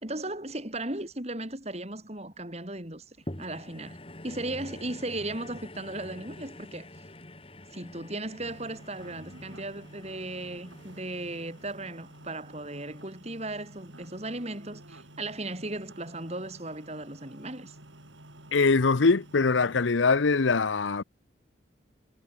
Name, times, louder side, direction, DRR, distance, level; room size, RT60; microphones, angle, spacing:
voice 1, 0.0-4.0 4.2-6.9 7.7-17.8, right 2 dB, 35° right, 4.4 m, -36 dB
sound 1, 3.3-13.8 14.4-14.5, left 1 dB, 30° left, 4.3 m, -47 dB
sound 2, 8.4-19.9, right 1 dB, 80° right, 6.7 m, -51 dB
voice 2, 18.5-21.0, left 4 dB, 85° left, 0.8 m, -23 dB
head